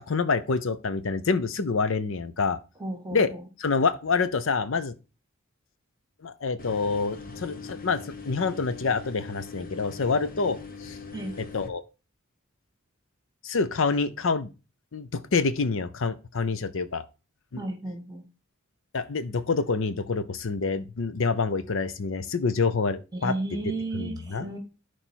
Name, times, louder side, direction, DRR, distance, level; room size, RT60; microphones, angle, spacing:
voice 1, 0.0-2.6 3.1-3.3 3.6-4.9 6.2-8.0 8.3-11.0 11.5-11.8 13.4-14.5 14.9-17.0 18.9-23.3 23.9-24.4, left 4 dB, 65° left, 0.6 m, -27 dB
voice 2, 2.8-3.4 11.1-11.4 17.6-18.2 23.1-24.6, right 2 dB, 20° right, 1.8 m, -33 dB
sound 1, 6.6-11.7, left 4 dB, 45° left, 1.2 m, -41 dB
11.0 x 4.6 x 4.5 m
head